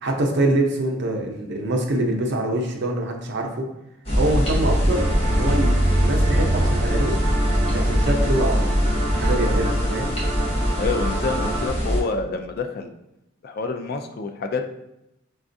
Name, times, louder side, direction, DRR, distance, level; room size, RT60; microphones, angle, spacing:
voice 1, 0.0-3.7 4.1-7.2 7.7-10.1, right 1 dB, 60° right, 2 dB, 0.6 m, -25 dB
sound 1, 4.0-12.0, equal, 30° left, 0.9 m, -21 dB
sound 2, 4.9-11.7, right 2 dB, 20° right, 0.7 m, -31 dB
voice 2, 10.8-12.9 13.4-14.7, left 4 dB, 50° left, 6 dB, 0.3 m, -27 dB
5.0 x 2.3 x 2.6 m, 0.86 s
head